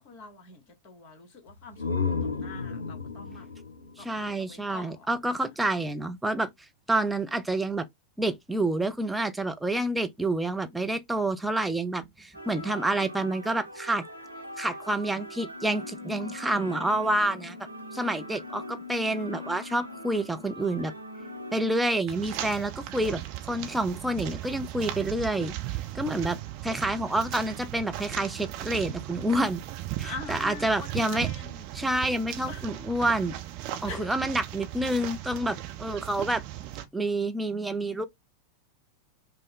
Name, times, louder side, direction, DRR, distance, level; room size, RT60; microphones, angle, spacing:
voice 1, 0.0-3.5 4.0-5.1 30.0-31.7 32.5-32.8 33.8-34.1, left 4 dB, 40° left, 1.3 m, -44 dB
sound 1, 1.5-5.2, left 5 dB, 75° left, 0.9 m, -33 dB
voice 2, 4.0-6.5 6.9-7.9 8.2-14.0 14.6-17.6 17.9-20.9 21.5-25.5 25.9-26.4 26.6-29.6 30.0-31.3 31.7-33.4 33.8-36.4 36.9-38.0, right 1 dB, 5° right, 0.5 m, -28 dB
sound 2, 12.3-21.9, left 2 dB, 90° right, 0.7 m, -41 dB
sound 3, 22.1-36.8, right 14 dB, 45° right, 0.7 m, -37 dB
5.2 x 2.1 x 3.7 m
figure-of-eight pair, 90°, 0 cm